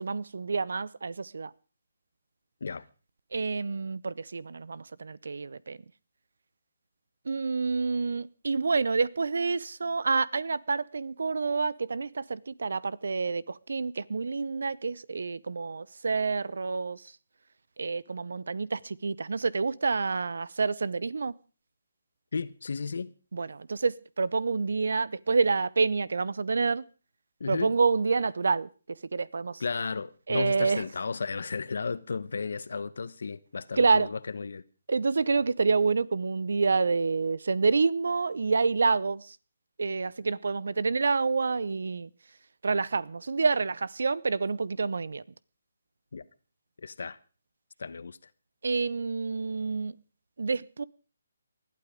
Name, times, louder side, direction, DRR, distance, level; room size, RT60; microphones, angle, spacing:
voice 1, 0.0-1.5 3.3-5.8 7.3-17.0 17.8-21.3 23.3-26.9 27.5-28.7 29.1-29.6 30.3-30.8 33.8-34.1 34.9-39.4 39.8-42.1 42.6-45.2 48.6-49.9 50.4-50.8, right 4 dB, 75° right, 0.8 m, -28 dB
voice 2, 22.3-23.1 27.4-27.7 29.6-34.6 46.1-46.2 46.8-47.2 47.8-48.2, left 4 dB, 70° left, 1.2 m, -34 dB
20.0 x 12.0 x 5.1 m
hypercardioid pair, 155°, 0 cm